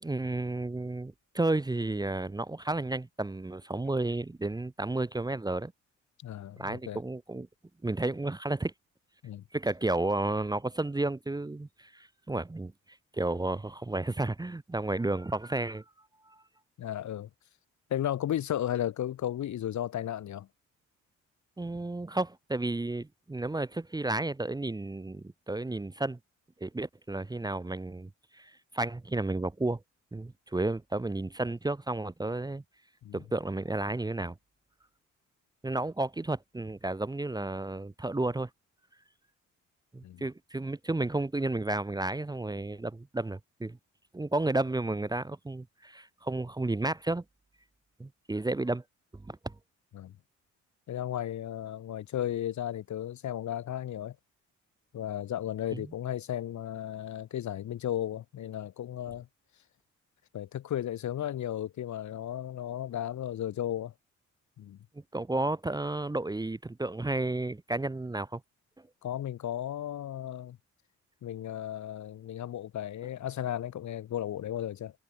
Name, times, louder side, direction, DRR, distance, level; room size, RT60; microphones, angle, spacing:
voice 1, 0.0-5.7 6.6-7.5 7.8-8.7 9.5-15.8 16.3-16.4 21.6-26.2 26.6-29.8 30.1-32.6 33.1-34.4 35.6-38.5 39.9-43.8 44.1-47.2 48.0-48.8 49.1-49.5 55.7-55.9 65.1-68.4, right 2 dB, 15° right, 1.1 m, -32 dB
voice 2, 6.2-7.0 9.2-9.4 16.8-17.3 17.9-20.5 33.0-33.2 40.0-40.2 49.9-50.1 50.9-54.1 54.9-59.3 60.3-63.9 64.6-64.8 69.0-70.6 71.2-74.9, left 11 dB, 70° left, 3.3 m, -34 dB
cardioid pair, 90°, 30 cm